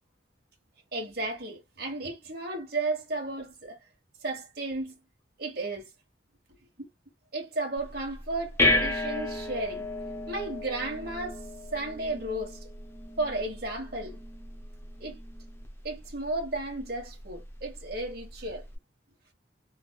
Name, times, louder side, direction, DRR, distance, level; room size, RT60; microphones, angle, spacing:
voice 1, 0.9-3.8 4.2-4.9 5.4-5.9 6.8-6.9 7.3-9.8 10.3-11.4 11.7-12.6 13.2-14.2 15.0-15.2 15.8-18.6, right 2 dB, 50° right, 1.5 m, -33 dB
sound 1, 7.8-18.8, left 2 dB, 10° left, 0.6 m, -34 dB
3.4 x 3.1 x 2.3 m
head